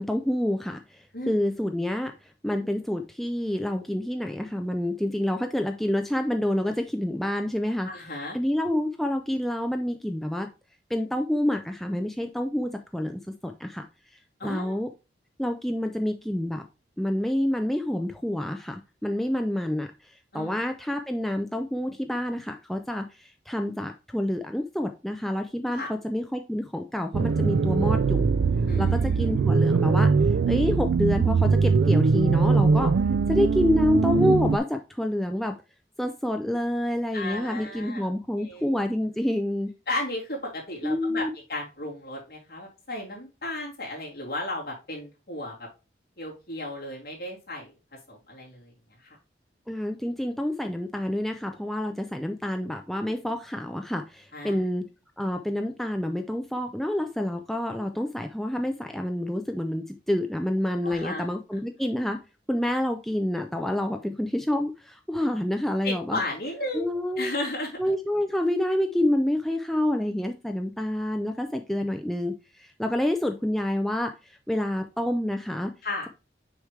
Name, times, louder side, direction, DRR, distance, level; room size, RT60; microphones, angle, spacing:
voice 1, 0.0-7.9 8.3-10.5 10.9-13.8 14.4-14.9 15.4-16.6 17.0-28.3 28.8-30.1 30.5-32.9 33.3-35.6 36.0-39.7 40.8-41.3 49.7-54.8 55.2-62.2 62.5-66.2 66.7-67.3 67.8-75.7, left 1 dB, ahead, 4 dB, 0.4 m, -28 dB
voice 2, 7.8-8.4 14.4-14.8 20.3-20.6 25.7-25.9 28.7-29.4 37.1-38.7 39.9-45.7 46.2-47.7 48.1-48.7 49.0-49.2 54.3-54.6 60.8-61.6 65.8-66.9 67.2-67.8 75.8-76.1, left 2 dB, 55° left, -3 dB, 2.7 m, -34 dB
sound 1, 27.1-34.6, right 4 dB, 75° right, 0.3 m, -22 dB
6.4 x 5.0 x 3.2 m, 0.29 s
head